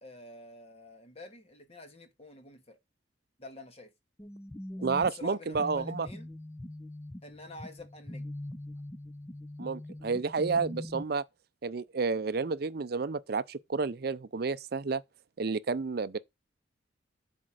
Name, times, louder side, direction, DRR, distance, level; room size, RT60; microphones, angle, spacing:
voice 1, 0.0-2.8 3.4-3.9 4.8-6.3 7.2-8.3, left 2 dB, 30° left, 1.6 m, -48 dB
sound 1, 4.2-11.0, left 1 dB, 15° left, 0.5 m, -42 dB
voice 2, 4.8-6.1 9.6-11.2 11.6-15.0 15.4-16.2, right 4 dB, 50° right, 0.5 m, -30 dB
7.9 x 4.4 x 6.3 m
head